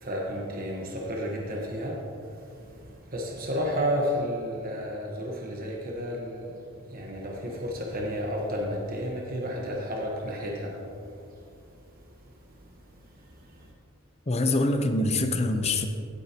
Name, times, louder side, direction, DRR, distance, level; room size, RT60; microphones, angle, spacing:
voice 1, 0.0-2.0 3.1-6.6 6.9-10.8, equal, 45° right, -1 dB, 1.2 m, -31 dB
voice 2, 14.3-15.9, left 2 dB, 30° left, 6 dB, 0.7 m, -24 dB
16.0 x 8.5 x 2.9 m, 2.6 s
head